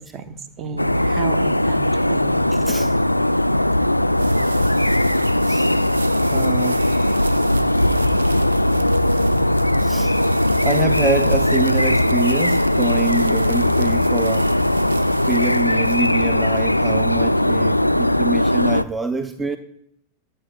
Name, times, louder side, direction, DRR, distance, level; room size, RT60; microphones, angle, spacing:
voice 1, 0.0-2.6, right 5 dB, 35° right, 9 dB, 1.2 m, -33 dB
sound 1, 0.8-18.8, left 1 dB, 85° left, 0.3 m, -19 dB
voice 2, 2.5-2.9 5.4-5.7 6.3-7.3 9.8-14.5 15.0-19.6, right 3 dB, 10° right, 10 dB, 0.6 m, -26 dB
sound 2, 3.6-17.9, right 5 dB, 75° right, 0.7 m, -38 dB
22.0 x 9.3 x 2.5 m, 0.74 s
figure-of-eight pair, 90°, 0 cm